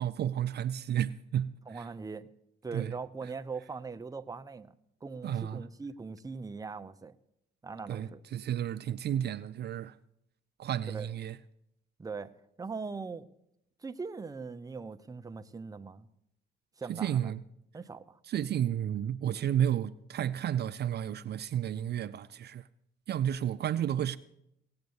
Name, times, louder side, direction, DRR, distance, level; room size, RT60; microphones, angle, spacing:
voice 1, 0.0-1.9 2.7-2.9 5.2-5.6 7.9-9.9 10.6-11.4 16.9-17.4 18.3-22.6 23.1-24.2, right 10 dB, 55° right, 0.5 m, -32 dB
voice 2, 1.7-2.3 2.6-4.7 5.0-7.1 7.6-8.2 10.9-11.1 12.0-12.3 12.6-13.3 13.8-16.1 16.8-17.3 17.7-18.2, right 4 dB, 20° right, 0.7 m, -41 dB
17.5 x 7.9 x 7.1 m
cardioid pair, 90°, 20 cm